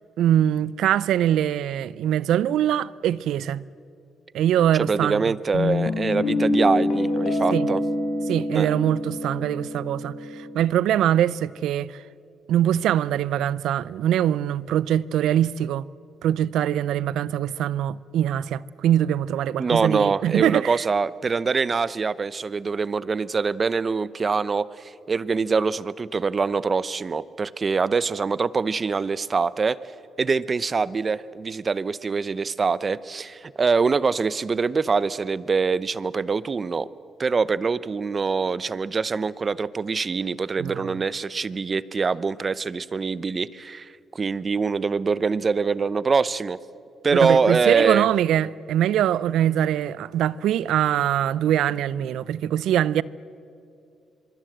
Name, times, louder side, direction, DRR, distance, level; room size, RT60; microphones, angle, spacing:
voice 1, 0.2-3.6 4.3-5.3 7.5-7.7 8.3-12.0 12.5-15.9 16.2-20.8 40.6-41.0 47.1-53.0, right 11 dB, 80° right, 0.5 m, -23 dB
voice 2, 4.8-7.8 8.5-8.7 19.6-29.8 30.2-36.9 37.2-46.6 47.0-48.1, right 4 dB, 40° right, 0.8 m, -24 dB
Guitar, 5.5-10.6, left 2 dB, 75° left, 3.8 m, -26 dB
25.5 x 24.0 x 7.9 m
cardioid pair, 70°, 0 cm